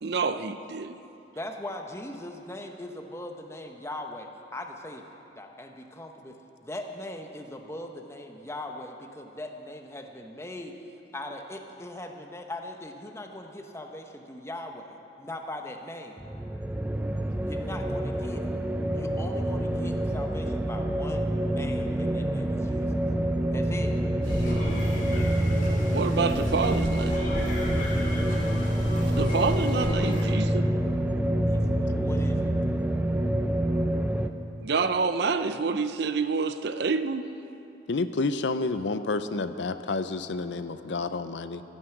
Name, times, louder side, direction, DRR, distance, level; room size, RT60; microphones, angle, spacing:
voice 1, 0.0-1.0 24.3-24.4 25.9-27.3 29.1-30.7 34.6-37.3, right 4 dB, 60° right, 11 dB, 0.6 m, -28 dB
voice 2, 1.3-5.1 5.4-10.8 11.1-16.2 17.5-18.5 18.9-23.1 23.5-24.0 27.8-28.3 31.5-32.5, left 1 dB, 15° left, 4 dB, 1.0 m, -40 dB
sound 1, 16.2-34.3, right 1 dB, 10° right, 0.5 m, -27 dB
sound 2, 24.2-30.2, equal, 45° left, 2.9 m, -34 dB
voice 3, 37.9-41.6, left 3 dB, 75° left, 11 dB, 0.6 m, -29 dB
14.0 x 10.5 x 7.9 m, 2.9 s
head